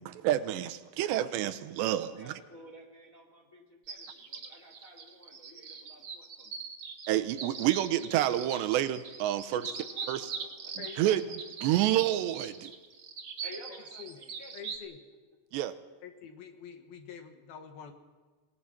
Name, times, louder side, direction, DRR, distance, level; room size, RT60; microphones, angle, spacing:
voice 1, 0.0-2.3 7.1-9.6 10.1-10.2 11.0-11.2 11.6-12.7 15.5-15.8, right 13 dB, 80° right, 11 dB, 3.0 m, -28 dB
voice 2, 2.0-6.6 9.3-10.7 13.4-14.6, equal, 35° left, 1 dB, 1.4 m, -52 dB
sound 1, 3.9-14.8, right 6 dB, 65° right, 1.2 m, -41 dB
voice 3, 10.8-11.2 14.0-14.2 14.5-15.0 16.0-17.9, left 7 dB, 65° left, 6 dB, 2.9 m, -46 dB
27.5 x 19.0 x 5.9 m, 1.4 s
omnidirectional pair, 5.1 m